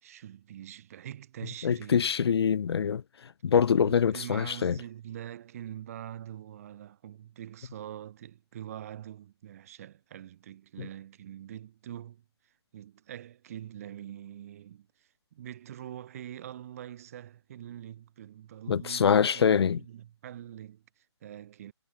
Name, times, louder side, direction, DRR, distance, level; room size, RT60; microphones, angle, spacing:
voice 1, 0.0-2.1 3.7-21.7, right 11 dB, 35° right, 2.8 m, -44 dB
voice 2, 1.6-4.8 10.8-10.9 18.7-19.8, left 7 dB, 65° left, 0.5 m, -25 dB
hypercardioid pair, 170°, 14 cm